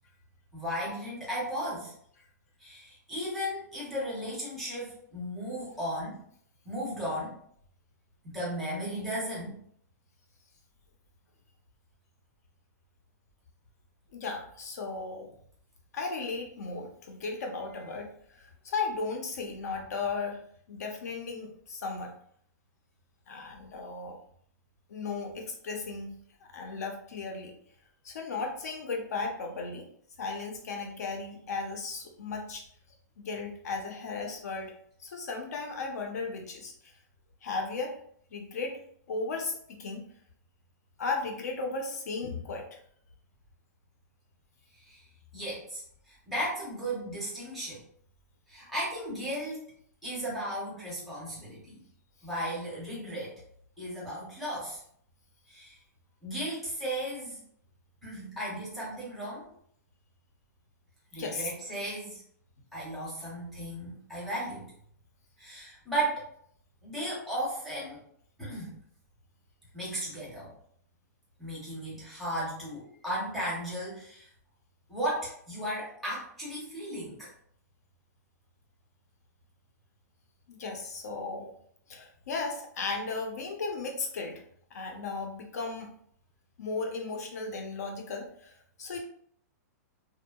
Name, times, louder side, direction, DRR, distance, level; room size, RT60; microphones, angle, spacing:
voice 1, 0.5-1.9 2.6-6.2 6.6-7.4 8.3-9.6 44.9-45.0 45.3-45.8 46.1-47.8 48.5-49.7 50.0-51.8 52.2-53.4 53.8-54.8 55.5-55.8 56.2-57.4 58.0-59.5 61.1-62.2 62.7-64.7 65.4-66.2 66.8-68.0 68.4-68.7 69.7-70.5 71.4-74.3 74.9-77.3, right 1 dB, ahead, -7 dB, 0.7 m, -35 dB
voice 2, 14.1-15.3 15.9-22.1 23.3-24.2 24.9-26.2 26.5-27.5 28.0-29.9 30.2-32.7 33.2-34.7 35.0-36.7 37.4-38.0 38.3-38.8 39.1-40.0 41.0-42.8 61.2-61.5 80.5-81.5 81.9-84.4 84.7-85.9 86.6-89.0, left 4 dB, 60° left, 3 dB, 0.6 m, -35 dB
2.7 x 2.1 x 2.3 m, 0.64 s
hypercardioid pair, 175°, 10 cm